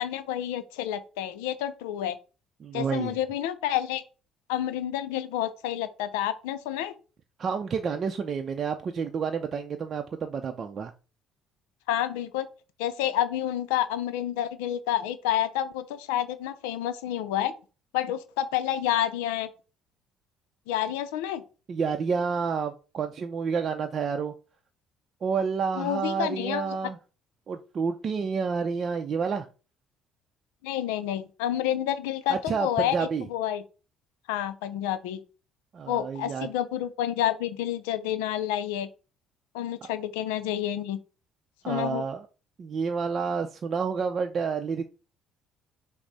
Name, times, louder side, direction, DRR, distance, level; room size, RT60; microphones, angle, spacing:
voice 1, 0.0-2.2 2.7-4.0 4.5-6.9 11.9-12.5 12.8-17.5 17.9-19.5 20.7-21.4 25.7-26.8 30.6-33.0 33.3-33.6 34.3-35.2 35.9-38.9 39.5-41.0 41.7-42.0, left 11 dB, 90° left, 0.5 m, -29 dB
voice 2, 2.6-3.2 7.4-10.9 21.7-24.3 25.2-27.0 27.5-29.5 32.3-33.2 35.7-36.5 41.6-42.2 42.6-44.8, right 6 dB, 50° right, 0.5 m, -29 dB
5.9 x 2.0 x 4.0 m
supercardioid pair, 70°, 0 cm